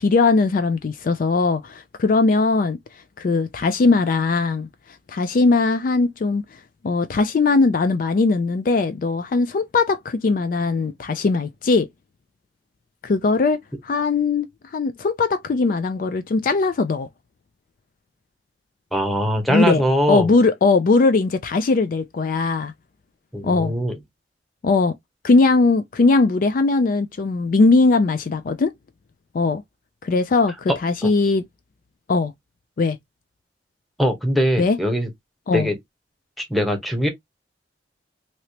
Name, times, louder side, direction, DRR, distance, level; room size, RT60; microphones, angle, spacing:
voice 1, 0.0-2.8 3.2-4.7 5.1-6.4 6.8-11.9 13.0-17.1 19.5-19.8 20.1-22.7 23.4-23.7 24.6-24.9 25.2-28.7 29.3-29.6 30.0-31.4 32.1-32.3 32.8-33.0 34.6-34.8 35.5-35.7, left 3 dB, 50° left, 0.3 m, -19 dB
voice 2, 18.9-20.3 23.3-24.0 31.0-31.1 34.0-35.1 35.5-35.8 36.4-37.1, equal, ahead, 0.9 m, -21 dB
3.1 x 2.8 x 2.8 m
head